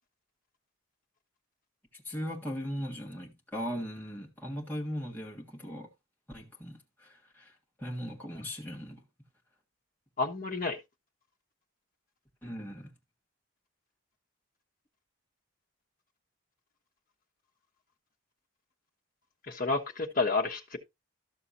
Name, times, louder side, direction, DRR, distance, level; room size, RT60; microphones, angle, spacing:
voice 1, 1.9-5.9 6.3-9.0 12.4-12.9, equal, 10° left, 1.6 m, -39 dB
voice 2, 10.2-10.8 19.5-20.8, left 3 dB, 40° left, 1.2 m, -30 dB
13.0 x 6.8 x 2.7 m
head